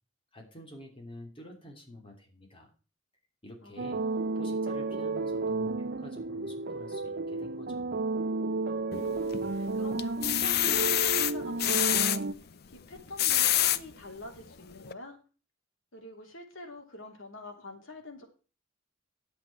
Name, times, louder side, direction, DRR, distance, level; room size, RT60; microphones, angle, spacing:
voice 1, 0.3-2.7 3.4-4.0 4.3-8.0, equal, 25° left, 2 dB, 3.2 m, -48 dB
voice 2, 3.6-4.4 8.9-12.3 12.7-15.2 15.9-18.2, left 1 dB, 85° left, 3 dB, 3.2 m, -46 dB
sound 1, 3.8-12.3, right 3 dB, 55° right, 0.6 m, -32 dB
sound 2, 8.9-9.5 10.0-12.2 13.0-13.8 14.4-14.5 14.8-14.9, left 12 dB, 50° left, 0.6 m, -26 dB
10.5 x 8.2 x 4.7 m, 0.35 s
head